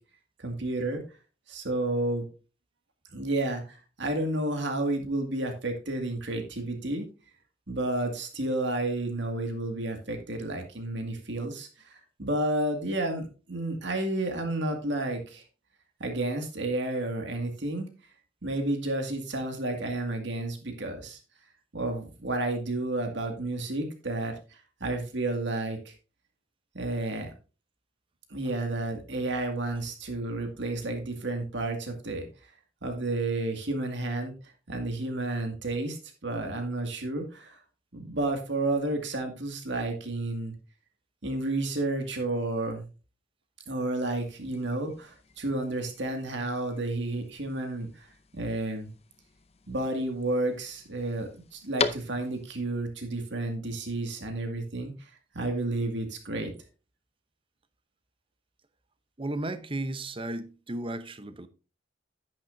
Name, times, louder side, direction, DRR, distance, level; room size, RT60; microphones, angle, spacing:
voice 1, 0.4-1.0 1.5-2.2 3.1-7.1 7.7-15.4 16.0-17.9 18.4-21.2 21.7-24.3 24.8-25.9 26.7-27.3 28.3-32.3 32.8-34.3 34.7-36.0 36.2-37.6 37.9-40.5 41.2-42.9 43.7-48.1 48.3-48.9 49.7-54.9 55.3-56.5, right 2 dB, 70° right, 2.1 m, -31 dB
sound 1, 44.1-52.6, left 5 dB, 35° left, 0.7 m, -40 dB
voice 2, 59.2-61.5, right 1 dB, 30° right, 0.8 m, -34 dB
10.5 x 9.1 x 2.7 m
head